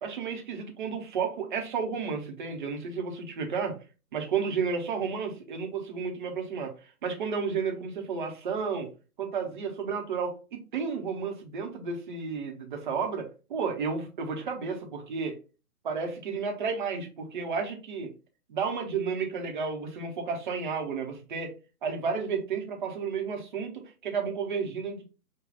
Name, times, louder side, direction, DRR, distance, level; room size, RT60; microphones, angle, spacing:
voice 1, 0.0-3.7 4.1-8.9 9.2-15.4 15.8-18.1 18.5-21.5 21.8-25.0, right 5 dB, 30° right, 3 dB, 0.9 m, -32 dB
5.0 x 2.3 x 3.9 m, 0.33 s
figure-of-eight pair, 135°, 47 cm